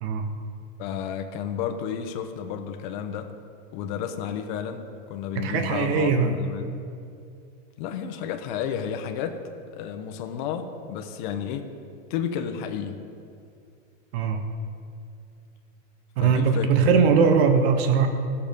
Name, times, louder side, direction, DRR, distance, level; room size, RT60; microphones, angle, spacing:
voice 1, 0.8-3.3 3.7-6.8 7.8-9.4 9.7-11.7 12.1-13.0 16.2-16.7, left 8 dB, 40° left, 6 dB, 0.9 m, -32 dB
voice 2, 5.3-6.3 14.1-14.4 16.2-18.1, right 5 dB, 50° right, 6 dB, 1.1 m, -20 dB
16.0 x 7.0 x 5.3 m, 2.4 s
supercardioid pair, 165°, 38 cm